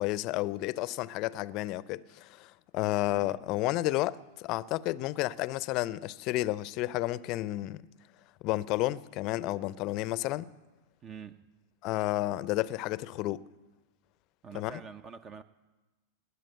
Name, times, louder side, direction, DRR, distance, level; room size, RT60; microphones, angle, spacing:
voice 1, 0.0-7.8 8.4-10.5 11.8-13.4 14.5-14.8, left 17 dB, 45° left, 0.5 m, -31 dB
voice 2, 3.1-3.4 11.0-11.5 14.4-15.4, right 6 dB, 30° right, 0.6 m, -46 dB
19.5 x 8.3 x 7.9 m
hypercardioid pair, 100°, 0 cm